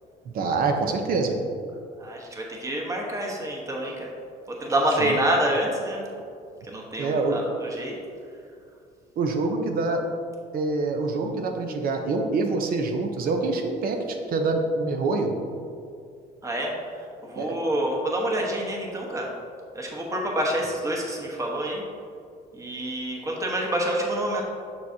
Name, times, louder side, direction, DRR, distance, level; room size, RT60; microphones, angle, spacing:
voice 1, 0.2-1.4 5.0-5.2 7.0-7.4 9.2-10.0 10.5-15.3 17.3-17.6, right 3 dB, 60° right, 4 dB, 0.8 m, -25 dB
voice 2, 2.0-4.1 4.5-6.0 6.6-8.0 16.4-19.3 19.7-21.8 22.5-24.4, right 1 dB, 20° right, -1 dB, 1.2 m, -27 dB
6.9 x 6.4 x 2.8 m, 2.3 s
cardioid pair, 110°, 17 cm